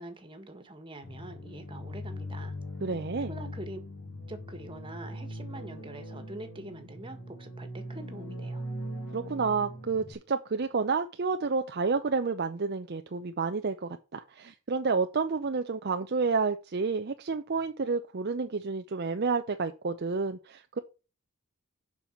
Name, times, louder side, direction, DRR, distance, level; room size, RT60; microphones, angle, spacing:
voice 1, 0.0-2.5 3.3-3.8 4.3-8.6, right 1 dB, 20° right, 1.7 m, -44 dB
sound 1, 1.0-10.1, equal, 70° left, 3.6 m, -40 dB
voice 2, 2.8-3.3 9.1-20.8, right 4 dB, 45° right, 0.6 m, -30 dB
7.2 x 5.5 x 7.2 m
head